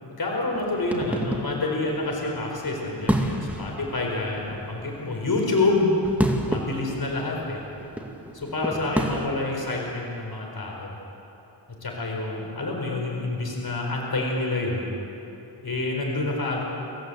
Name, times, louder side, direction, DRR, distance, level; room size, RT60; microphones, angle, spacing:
voice 1, 0.0-5.9 6.5-7.6 8.3-11.0 11.8-14.9 15.6-16.6, left 2 dB, 50° left, -1 dB, 4.7 m, -27 dB
sound 1, 0.5-9.3, right 1 dB, 5° right, 2.2 m, -31 dB
28.0 x 15.0 x 8.1 m, 2.9 s
wide cardioid pair, 75°, 45 cm